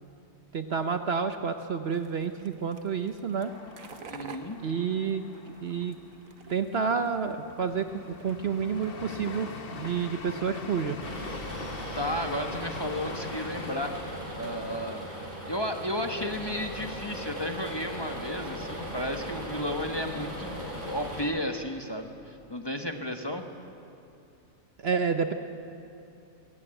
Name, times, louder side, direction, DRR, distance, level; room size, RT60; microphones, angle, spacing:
voice 1, 0.5-3.5 4.6-5.2 5.6-6.0 6.5-7.8 8.2-11.0 24.8-25.3, right 6 dB, 55° right, 8 dB, 1.0 m, -29 dB
sound 1, 1.9-9.0, right 6 dB, 75° right, 1.5 m, -49 dB
sound 2, 3.4-17.1 17.4-17.5 17.9-18.5, left 4 dB, 45° left, 1.2 m, -44 dB
voice 2, 4.1-4.6 11.9-14.0 14.4-15.0 15.5-23.4, left 1 dB, 20° left, 4 dB, 1.2 m, -33 dB
sound 3, 11.0-21.2, equal, 30° right, 6.7 m, -38 dB
22.0 x 16.5 x 8.9 m, 2.7 s
omnidirectional pair, 1.4 m